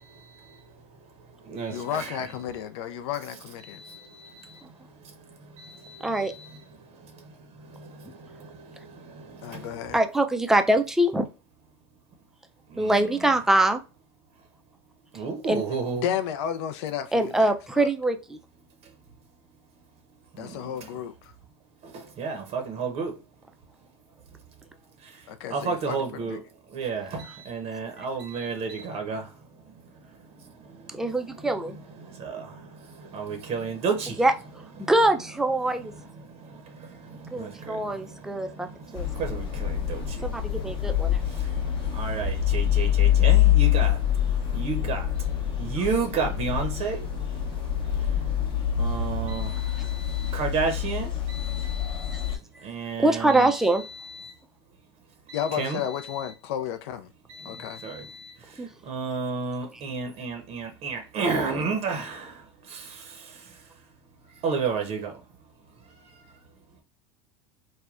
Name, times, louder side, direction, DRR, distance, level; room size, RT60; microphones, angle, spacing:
voice 1, 0.1-0.7 1.4-2.2 3.6-9.9 12.7-13.0 15.1-16.0 20.3-20.9 21.8-23.1 25.0-26.4 26.7-29.4 29.6-31.0 31.4-31.5 32.0-34.2 34.8-34.9 36.2-52.3 52.6-54.3 55.3-56.3 57.3-63.6 64.4-65.2 65.9-66.2, right 4 dB, 45° right, 0.7 m, -33 dB
voice 2, 1.7-3.8 9.4-10.0 16.0-17.9 20.4-21.3 25.3-26.4 55.3-57.1 57.4-57.8, left 9 dB, 70° left, 0.4 m, -32 dB
voice 3, 6.0-6.3 8.0-8.1 9.9-11.3 12.8-13.8 15.5-15.6 17.1-18.4 30.9-31.8 34.2-35.9 37.3-38.7 38.9-39.1 40.2-41.2 45.8-45.9 49.1-49.2 53.0-53.8 58.6-58.7 59.7-59.8, right 1 dB, 5° right, 0.3 m, -24 dB
sound 1, 38.9-52.4, left 10 dB, 35° left, 0.7 m, -25 dB
3.3 x 2.1 x 2.4 m
hypercardioid pair, 100°, 14 cm